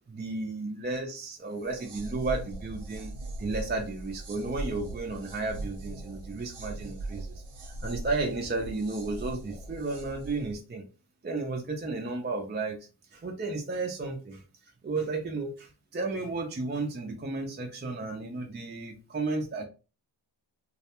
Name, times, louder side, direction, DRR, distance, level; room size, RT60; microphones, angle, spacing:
voice 1, 0.1-10.9 11.2-14.4 14.8-19.7, right 3 dB, 25° right, 2 dB, 0.3 m, -33 dB
sound 1, 1.5-10.6, right 2 dB, 80° right, 0.7 m, -40 dB
2.3 x 2.1 x 2.8 m, 0.33 s
wide cardioid pair, 90°, 50 cm